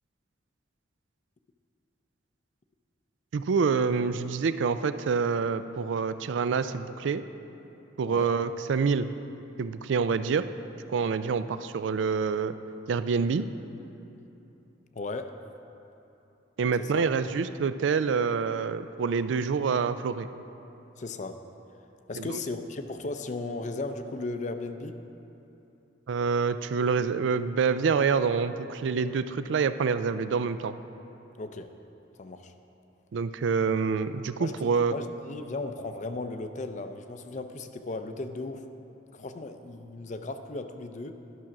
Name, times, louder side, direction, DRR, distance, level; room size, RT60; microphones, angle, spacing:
voice 1, 3.3-7.2 8.0-9.1 9.6-10.4 10.9-12.5 12.9-13.4 16.6-20.3 22.2-22.4 26.1-30.7 33.1-35.0, right 5 dB, 80° right, 12 dB, 0.4 m, -27 dB
voice 2, 14.9-15.4 16.8-17.1 21.0-21.4 22.1-24.9 31.4-31.7 32.2-32.5 34.4-34.6 34.9-38.7 39.1-41.2, left 3 dB, 40° left, 8 dB, 0.5 m, -36 dB
11.0 x 6.1 x 5.9 m, 2.9 s
head